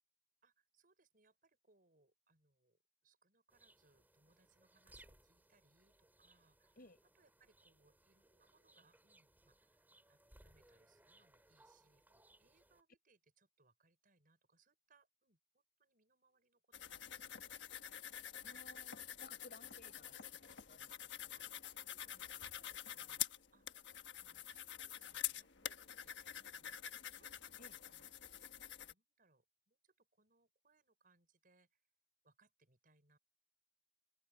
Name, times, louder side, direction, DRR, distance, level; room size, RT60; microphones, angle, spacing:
voice 1, 0.4-17.4 21.3-27.4 27.7-28.4 28.8-31.9 32.2-33.2, right 3 dB, 50° right, 6.1 m, -75 dB
sound 1, 3.5-12.8, right 1 dB, 10° right, 7.2 m, -68 dB
sound 2, 16.7-28.9, left 11 dB, 80° left, 1.3 m, -47 dB
voice 2, 18.4-21.4 27.6-27.8, left 2 dB, 55° left, 5.0 m, -61 dB
head